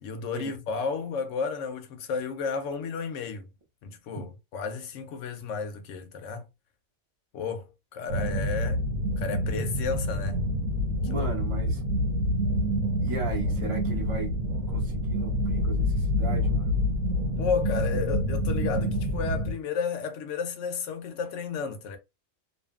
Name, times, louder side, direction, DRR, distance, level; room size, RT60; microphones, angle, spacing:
voice 1, 0.0-3.5 3.8-6.5 7.3-8.8 9.2-10.4 11.1-11.3 17.4-22.0, left 5 dB, 70° left, 0.9 m, -32 dB
sound 1, 8.1-19.5, equal, 75° right, 1.1 m, -27 dB
voice 2, 11.0-11.8 13.0-14.3 14.7-16.8 17.9-18.1, right 3 dB, 30° right, 0.6 m, -36 dB
2.6 x 2.5 x 2.2 m
omnidirectional pair, 1.4 m